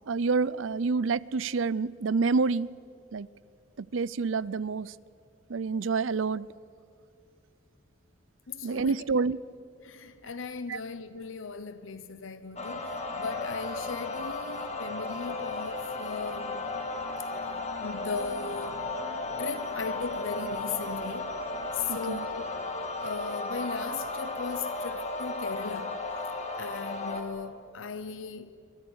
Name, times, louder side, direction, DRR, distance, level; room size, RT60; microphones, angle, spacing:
voice 1, 0.1-2.7 3.1-3.3 3.8-4.9 5.5-6.5 8.6-9.4 10.7-10.8 21.9-22.3, right 4 dB, 85° right, 0.6 m, -28 dB
voice 2, 8.5-9.0 9.8-16.6 17.8-18.9 19.4-21.4 21.7-22.5 23.0-28.6, left 5 dB, 85° left, 0.8 m, -37 dB
sound 1, 12.6-27.2, left 2 dB, 35° left, 2.5 m, -35 dB
28.0 x 25.5 x 6.4 m
head